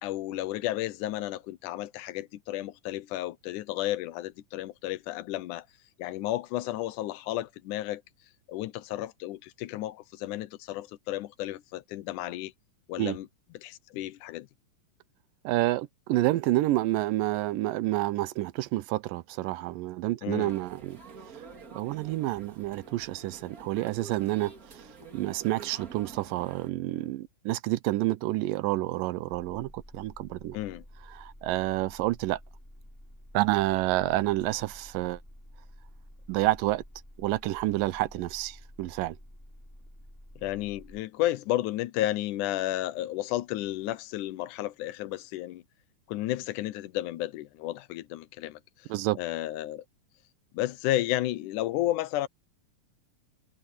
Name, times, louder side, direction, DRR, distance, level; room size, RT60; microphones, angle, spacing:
voice 1, 0.0-5.7 6.0-8.0 8.5-12.5 12.9-13.3 13.5-14.5 20.2-20.6 30.5-30.8 40.4-45.6 46.1-48.9 49.2-49.9 50.5-52.3, left 15 dB, 75° left, 2.1 m, -32 dB
voice 2, 15.4-21.0 21.4-24.8 25.1-30.6 31.1-32.4 33.3-35.2 36.3-36.8 37.2-39.2 48.9-49.2, right 17 dB, 90° right, 2.4 m, -29 dB
sound 1, 20.5-26.7, right 4 dB, 30° right, 2.3 m, -48 dB
sound 2, 29.3-41.0, equal, 5° left, 6.1 m, -51 dB
omnidirectional pair, 3.8 m